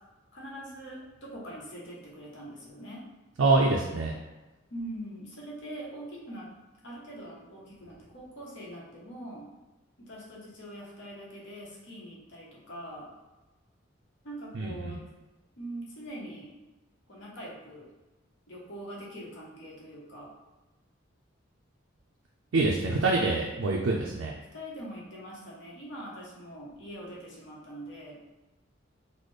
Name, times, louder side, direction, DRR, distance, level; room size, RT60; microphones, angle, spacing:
voice 1, 0.3-3.0 4.7-6.5 6.8-9.5 10.0-13.1 14.2-15.0 15.6-16.5 17.1-17.9 18.5-20.3 24.5-28.2, right 1 dB, 65° left, -4 dB, 1.0 m, -43 dB
voice 2, 3.4-4.1 14.5-15.0 22.5-24.3, right 3 dB, 85° right, -1 dB, 0.4 m, -25 dB
4.0 x 2.0 x 3.2 m, 1.1 s
head